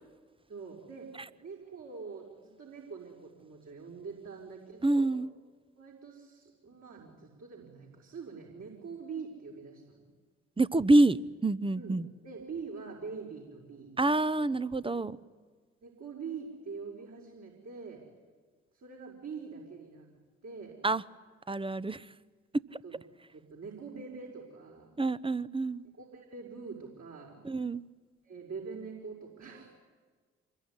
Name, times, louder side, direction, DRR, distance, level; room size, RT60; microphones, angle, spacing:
voice 1, 0.5-1.1 1.4-5.1 5.8-10.1 11.8-12.0 12.2-13.9 14.8-15.1 15.8-18.0 18.7-20.1 20.4-20.8 22.8-23.0 23.3-24.9 25.9-27.4 28.2-29.7, right 5 dB, 50° right, -1 dB, 5.7 m, -44 dB
voice 2, 4.8-5.3 10.6-12.1 14.0-15.2 20.8-21.0 21.5-22.0 25.0-25.8 27.4-27.9, right 2 dB, 15° right, 16 dB, 1.0 m, -27 dB
26.5 x 22.0 x 9.9 m, 1.5 s
figure-of-eight pair, 40°, 33 cm